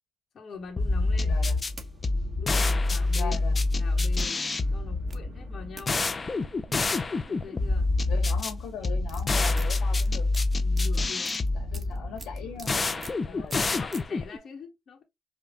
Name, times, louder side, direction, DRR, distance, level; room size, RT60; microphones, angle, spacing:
voice 1, 0.3-1.3 2.4-3.4 3.7-6.0 7.2-7.9 10.6-11.4 13.3-15.0, left 5 dB, 55° left, 1.1 m, -44 dB
Race car auto racing, 0.5-13.1, right 4 dB, 60° right, 2.7 m, -53 dB
sound 1, 0.8-14.4, left 3 dB, 30° left, 0.5 m, -27 dB
voice 2, 1.2-1.6 3.1-3.6 8.1-10.3 11.6-12.8 13.2-13.6, left 6 dB, 90° left, 1.7 m, -39 dB
sound 2, 1.4-1.9 2.8-2.9 4.1-4.2 5.1-5.2 5.8-5.9 7.3-7.4 7.7-8.0 8.7-12.7 13.0-13.2 13.4-14.0, right 3 dB, 25° right, 1.5 m, -46 dB
5.2 x 2.2 x 3.5 m
cardioid pair, 90°, 0 cm